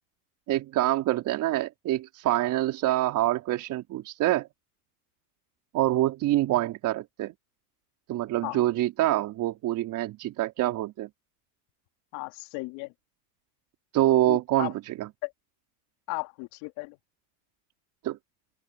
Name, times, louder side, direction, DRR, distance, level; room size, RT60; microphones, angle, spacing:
voice 1, 0.5-4.5 5.7-7.3 8.1-11.1 13.9-15.1 18.0-18.2, right 15 dB, 40° right, 4.3 m, -26 dB
voice 2, 12.1-12.9 14.3-14.7 15.2-15.3 16.1-17.0, left 24 dB, 55° left, 3.5 m, -35 dB
open air
supercardioid pair, 145°, 47 cm